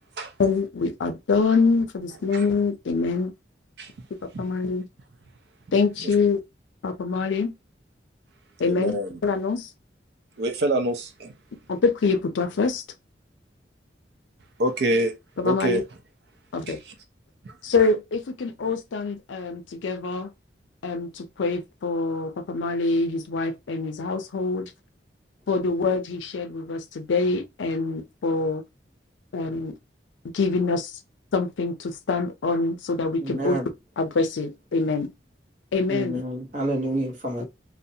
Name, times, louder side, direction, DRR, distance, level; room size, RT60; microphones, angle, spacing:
voice 1, 0.4-3.3 4.4-4.9 5.7-6.4 6.8-7.5 8.6-9.7 11.7-12.8 15.4-15.8 16.5-16.8 17.6-20.3 20.8-24.7 25.5-28.6 29.3-29.8 30.3-30.9 31.3-33.6 34.0-35.1 35.7-36.2, left 4 dB, 90° left, 0.5 m, -25 dB
voice 2, 8.7-9.2 10.4-11.3 14.6-15.1 15.4-15.8 16.7-16.8 17.4-17.6, right 1 dB, 65° right, 0.5 m, -26 dB
voice 3, 33.2-33.7 35.9-37.5, right 1 dB, 45° right, 0.9 m, -28 dB
2.3 x 2.0 x 2.7 m
head